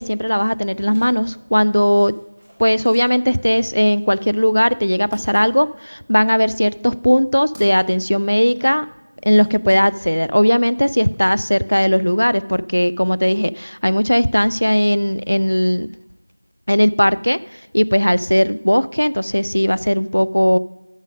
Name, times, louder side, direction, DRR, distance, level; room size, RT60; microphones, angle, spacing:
voice 1, 0.0-2.2 2.6-8.9 9.2-15.9 16.7-17.4 17.7-20.6, equal, 85° left, 18 dB, 0.4 m, -17 dB
sound 1, 0.8-10.3 10.6-11.5, equal, 20° right, 1.4 m, -46 dB
12.0 x 5.1 x 6.3 m, 1.0 s
figure-of-eight pair, 180°, 0 cm